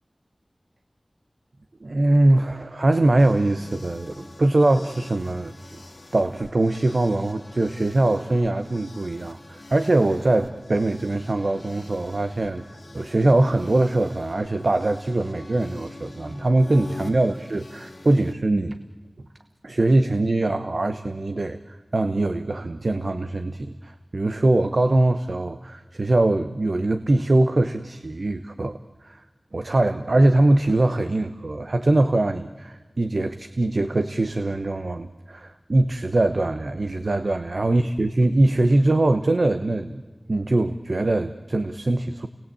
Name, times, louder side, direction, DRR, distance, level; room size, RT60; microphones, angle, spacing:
voice 1, 1.8-5.8 6.1-12.6 12.9-18.8 19.6-29.2 29.5-40.0 40.3-42.3, right 2 dB, 70° right, 9 dB, 1.0 m, -22 dB
sound 1, 3.2-18.3, left 2 dB, 55° left, 2.1 m, -44 dB
30.0 x 20.5 x 8.5 m, 1.4 s
wide cardioid pair, 55°, 0 cm